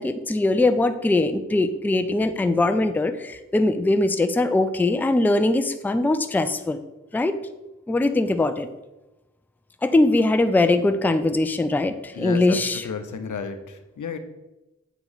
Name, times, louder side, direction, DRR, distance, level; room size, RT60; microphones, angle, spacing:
voice 1, 0.0-6.8 7.1-7.4 7.9-8.7 9.8-12.9, left 2 dB, 5° left, 9 dB, 0.4 m, -21 dB
voice 2, 12.1-12.6 12.8-14.2, left 5 dB, 80° left, 8 dB, 0.6 m, -32 dB
8.1 x 2.9 x 4.0 m, 1.0 s
cardioid pair, 45°, 30 cm